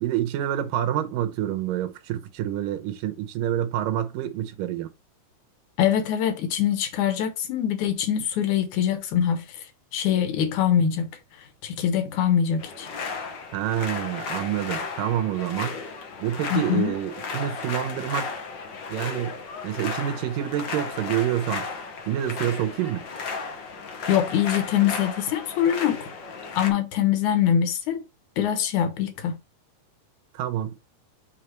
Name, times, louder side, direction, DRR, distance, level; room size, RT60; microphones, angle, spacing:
voice 1, 0.0-4.9 13.5-15.8 16.2-18.3 18.9-19.4 19.6-21.7 22.1-23.1 30.3-30.8, right 11 dB, 85° right, 2.6 m, -27 dB
voice 2, 5.8-9.4 9.9-11.1 11.6-12.9 16.5-16.9 24.1-26.0 26.6-28.0 28.4-29.4, left 9 dB, 70° left, 2.4 m, -23 dB
sound 1, 12.6-26.7, left 4 dB, 90° left, 1.0 m, -34 dB
6.5 x 3.6 x 4.4 m
omnidirectional pair, 3.9 m